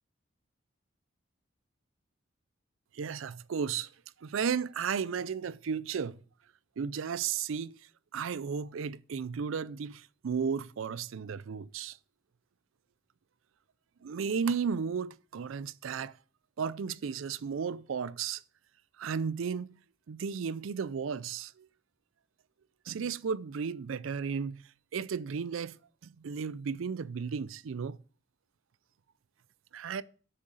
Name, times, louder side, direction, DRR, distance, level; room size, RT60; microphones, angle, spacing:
voice 1, 2.9-3.9 4.2-6.2 6.8-7.8 8.1-12.0 14.0-16.1 16.6-18.4 19.0-19.8 20.1-21.7 22.9-24.6 24.9-25.8 26.0-28.0 29.7-30.0, right 6 dB, 80° right, 0.4 m, -34 dB
7.6 x 6.5 x 7.5 m
head